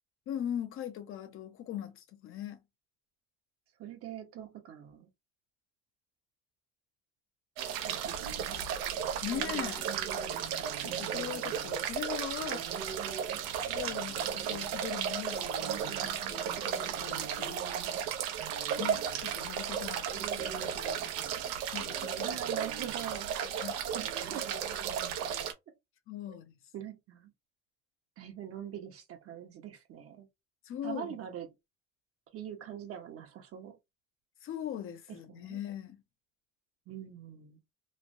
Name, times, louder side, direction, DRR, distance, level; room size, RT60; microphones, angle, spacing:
voice 1, 0.3-2.6 9.2-9.9 10.8-12.7 13.7-17.6 18.8-21.1 21.7-22.4 23.4-23.7 26.1-26.5 30.6-31.2 34.4-36.0, left 10 dB, 45° left, 0.6 m, -40 dB
voice 2, 3.8-5.1 7.8-8.5 10.8-11.6 22.2-23.3 23.9-24.5 26.3-26.4 26.7-27.3 28.2-30.3 30.8-31.5 32.3-33.7 35.3-35.6 36.9-37.6, right 10 dB, 50° right, 0.8 m, -43 dB
sound 1, 7.6-25.5, right 8 dB, 85° right, 0.6 m, -34 dB
3.1 x 2.1 x 2.6 m
cardioid pair, 130°, 31 cm